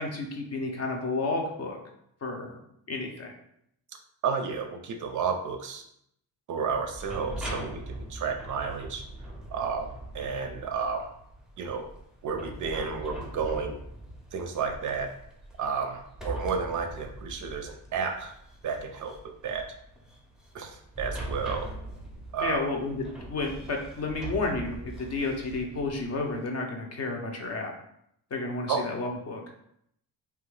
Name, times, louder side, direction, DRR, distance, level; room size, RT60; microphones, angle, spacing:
voice 1, 0.0-1.8 2.2-2.6 2.9-3.3 22.4-27.7 28.3-29.4, left 3 dB, 40° left, 1 dB, 0.6 m, -31 dB
voice 2, 4.2-5.8 6.5-9.0 9.5-9.9 10.1-11.1 11.6-11.9 12.2-13.8 14.3-15.1 15.6-18.3 18.6-19.7 20.5-21.7 22.3-22.7 28.7-28.8, right 5 dB, 50° right, 4 dB, 0.4 m, -31 dB
sound 1, 6.7-26.4, right 1 dB, ahead, 0.5 m, -42 dB
2.7 x 2.3 x 3.2 m, 0.73 s
cardioid pair, 105°, 38 cm